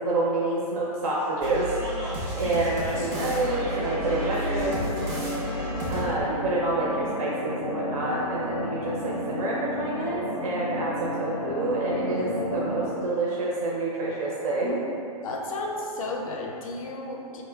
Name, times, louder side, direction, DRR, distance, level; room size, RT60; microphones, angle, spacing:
voice 1, 0.0-1.7 2.4-4.9 5.9-14.8, right 2 dB, 60° right, -5 dB, 0.5 m, -28 dB
sound 1, 1.4-6.3, equal, 10° right, 0.4 m, -32 dB
sound 2, 2.9-12.9, left 1 dB, 85° right, 1.3 m, -32 dB
voice 2, 15.2-17.4, left 2 dB, 60° left, 0 dB, 0.4 m, -33 dB
4.2 x 2.9 x 2.2 m, 2.8 s
hypercardioid pair, 155°, 20 cm